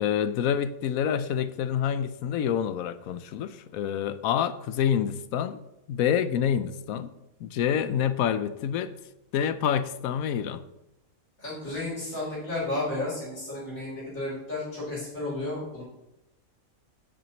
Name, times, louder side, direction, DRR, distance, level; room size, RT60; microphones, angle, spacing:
voice 1, 0.0-5.6 5.9-7.1 7.4-8.9 9.3-10.6, left 9 dB, 85° left, 13 dB, 1.0 m, -27 dB
voice 2, 11.4-15.8, left 2 dB, 70° left, -8 dB, 4.1 m, -32 dB
9.6 x 8.8 x 3.0 m, 0.91 s
omnidirectional pair, 1.4 m